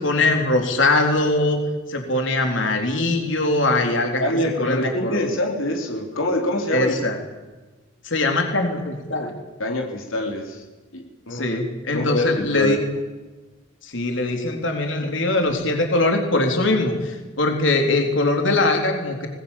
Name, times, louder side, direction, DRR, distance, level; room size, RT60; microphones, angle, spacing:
voice 1, 0.0-1.6 1.9-4.2 4.6-5.3 6.7-7.2 8.0-9.3 11.3-12.8 13.8-19.3, left 2 dB, 65° left, 3 dB, 3.9 m, -21 dB
voice 2, 4.2-6.9 9.6-10.6 10.9-11.5 11.9-12.8, left 1 dB, 85° left, 2 dB, 3.8 m, -25 dB
25.0 x 21.0 x 7.4 m, 1.2 s
head